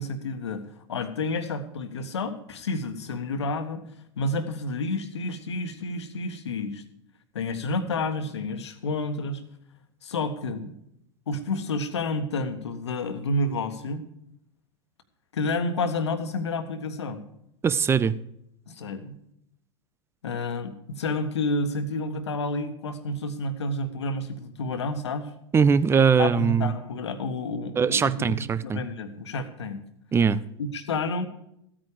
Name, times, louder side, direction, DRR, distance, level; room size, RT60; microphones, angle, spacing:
voice 1, 0.0-3.8 4.2-6.8 7.3-9.4 10.0-10.7 11.3-14.0 15.3-17.2 18.7-19.2 20.2-25.3 26.2-29.8 30.6-31.3, left 2 dB, 70° left, 8 dB, 1.5 m, -30 dB
voice 2, 17.6-18.2 25.5-26.7 27.8-28.8 30.1-30.4, right 6 dB, 15° right, 16 dB, 0.6 m, -21 dB
15.0 x 8.9 x 5.0 m, 0.76 s
figure-of-eight pair, 90°, 15 cm